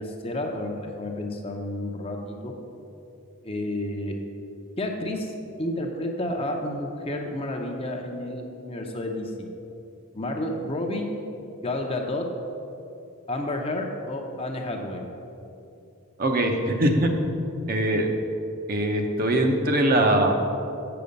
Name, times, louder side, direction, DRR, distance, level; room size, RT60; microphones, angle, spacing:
voice 1, 0.0-2.5 3.4-4.1 4.8-5.3 5.6-9.3 10.1-11.1 11.6-12.3 13.3-15.0, left 1 dB, 25° left, 2 dB, 0.7 m, -30 dB
voice 2, 16.2-17.1 17.7-18.1 18.7-20.3, right 1 dB, 40° right, 3 dB, 0.7 m, -22 dB
7.7 x 6.8 x 5.2 m, 2.8 s
head